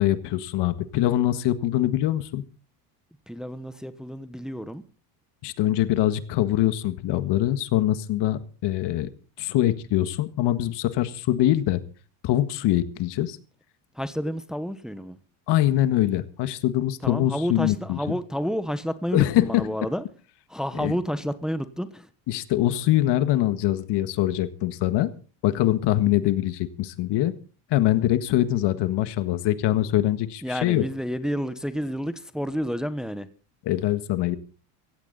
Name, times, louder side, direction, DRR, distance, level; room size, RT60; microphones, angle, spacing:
voice 1, 0.0-2.4 5.4-9.1 9.4-11.8 12.2-13.4 15.5-18.0 19.1-19.7 20.8-20.9 22.3-25.1 25.4-27.3 27.7-30.8 33.6-34.4, left 14 dB, 60° left, 12 dB, 1.7 m, -23 dB
voice 2, 3.3-4.8 13.9-15.2 17.0-20.0 20.5-22.1 30.4-33.3, equal, ahead, 12 dB, 1.1 m, -30 dB
16.5 x 15.5 x 4.1 m, 0.37 s
supercardioid pair, 110°, 46 cm